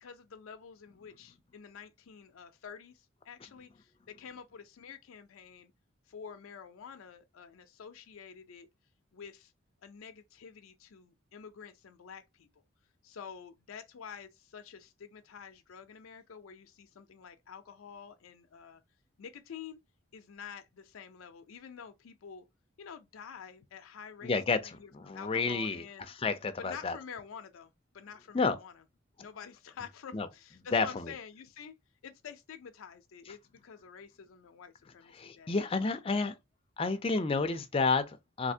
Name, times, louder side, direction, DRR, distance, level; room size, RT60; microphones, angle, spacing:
voice 1, 0.0-5.7 6.1-8.7 9.1-9.5 9.8-12.5 13.0-18.8 19.2-19.8 20.1-22.5 22.8-26.0 26.6-28.8 29.2-31.7 32.0-36.2, left 7 dB, 85° left, 0.4 m, -48 dB
voice 2, 24.2-27.0 28.3-28.6 30.1-30.3 30.7-31.1 35.1-36.3 36.8-38.5, left 4 dB, 25° left, 0.4 m, -30 dB
3.3 x 2.7 x 2.7 m
head